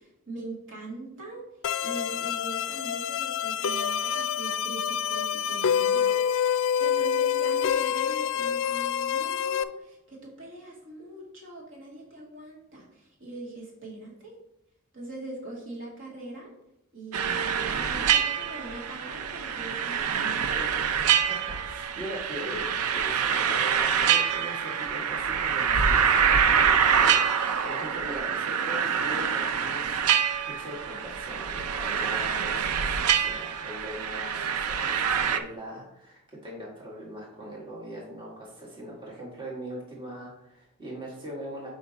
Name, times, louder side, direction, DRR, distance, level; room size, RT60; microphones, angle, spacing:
voice 1, 0.0-1.4 1.8-14.3 14.9-16.5 16.9-20.8, right 2 dB, 60° right, -3 dB, 1.9 m, -42 dB
sound 1, 1.6-9.6, left 8 dB, 60° left, 0.3 m, -27 dB
sound 2, 17.1-35.4, right 7 dB, 80° right, 0.5 m, -25 dB
voice 2, 21.3-41.7, equal, 20° right, -4 dB, 1.5 m, -41 dB
5.7 x 5.0 x 4.0 m, 0.82 s
head